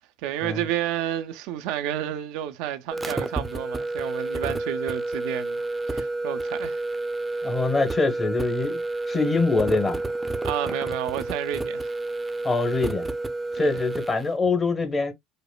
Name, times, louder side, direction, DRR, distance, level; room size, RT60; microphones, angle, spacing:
voice 1, 0.2-5.6 5.9-6.8 7.3-7.5 10.4-11.9 13.6-13.8, right 12 dB, 70° right, 0.5 m, -31 dB
sound 1, 2.9-14.2, right 2 dB, 20° right, 0.6 m, -30 dB
voice 2, 7.4-8.8 9.1-10.0 12.4-13.1 13.6-15.1, left 3 dB, 30° left, 1.2 m, -24 dB
5.1 x 2.1 x 2.3 m
hypercardioid pair, 65°, 0 cm